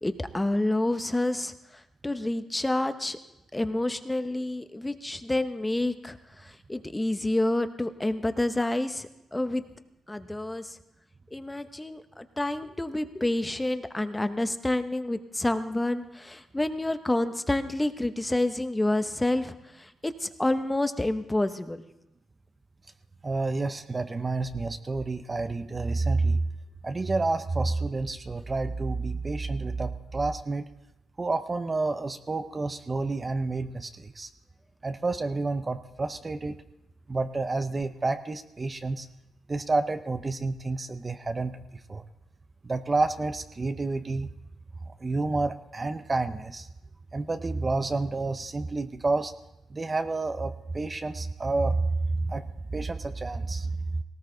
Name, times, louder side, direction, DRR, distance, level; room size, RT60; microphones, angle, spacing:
voice 1, 0.0-1.5 2.0-3.2 3.5-9.6 10.1-10.8 11.3-21.8, left 1 dB, 10° left, 9 dB, 0.9 m, -28 dB
voice 2, 23.2-26.4 26.8-30.7 31.2-34.3 34.8-36.6 37.1-39.1 39.5-41.6 41.9-42.0 42.6-44.3 45.0-46.7 47.1-49.3 49.7-52.4 52.7-54.0, right 3 dB, 25° right, 9 dB, 0.6 m, -29 dB
18.5 x 17.0 x 3.9 m, 0.93 s
cardioid pair, 105°, 0 cm